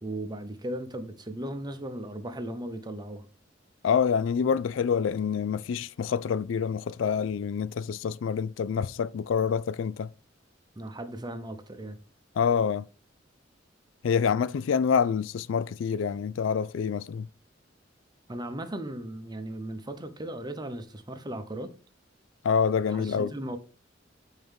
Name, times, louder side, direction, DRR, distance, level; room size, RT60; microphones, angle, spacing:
voice 1, 0.0-3.3 10.7-12.0 18.3-21.7 22.9-23.6, right 1 dB, 20° right, 0.8 m, -37 dB
voice 2, 3.8-10.1 12.4-12.9 14.0-17.3 22.4-23.3, left 6 dB, 80° left, 0.4 m, -27 dB
8.5 x 4.6 x 3.5 m
head